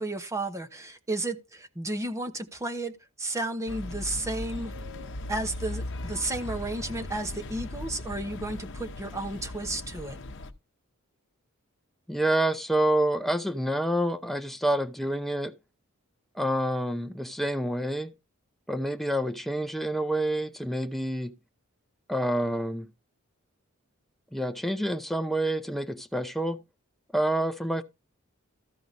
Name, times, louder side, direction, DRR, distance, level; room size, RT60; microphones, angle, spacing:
voice 1, 0.0-2.9 3.2-4.7 5.3-10.2, right 2 dB, 15° right, 1.1 m, -33 dB
sound 1, 3.7-10.5, left 1 dB, 60° left, 0.9 m, -38 dB
voice 2, 12.1-15.5 16.4-18.1 18.7-21.3 22.1-22.9 24.3-26.6 27.1-27.8, right 1 dB, ahead, 0.7 m, -28 dB
14.0 x 4.7 x 4.1 m
head